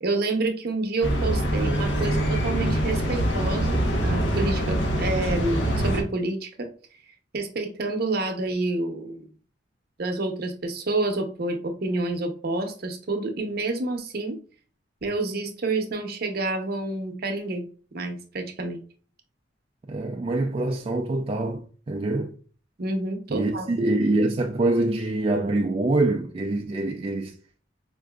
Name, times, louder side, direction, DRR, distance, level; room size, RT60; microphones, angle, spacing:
voice 1, 0.0-6.7 7.3-9.2 10.0-14.4 15.0-17.7 17.9-18.8 22.8-23.7, right 2 dB, 55° right, 0.7 m, -28 dB
sound 1, 1.0-6.0, right 1 dB, 85° left, 0.9 m, -24 dB
voice 2, 19.9-22.3 23.3-27.3, right 2 dB, 30° right, 0.3 m, -25 dB
4.6 x 2.5 x 2.2 m
head